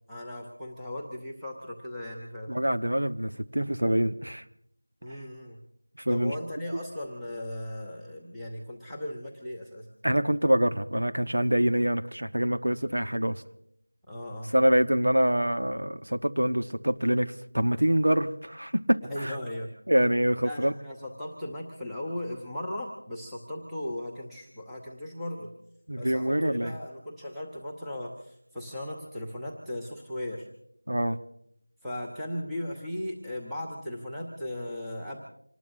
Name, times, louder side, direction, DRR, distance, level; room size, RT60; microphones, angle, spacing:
voice 1, 0.1-2.5 5.0-5.6 6.1-9.9 14.1-14.5 19.0-19.8 20.4-25.5 26.0-30.5 31.8-35.2, left 1 dB, ahead, -9 dB, 0.9 m, -37 dB
voice 2, 2.5-4.4 6.0-6.3 10.0-13.4 14.5-19.3 19.9-20.7 25.9-26.8 30.9-31.2, equal, 80° right, 8 dB, 1.3 m, -25 dB
26.5 x 19.5 x 2.7 m, 0.71 s
figure-of-eight pair, 180°, 0 cm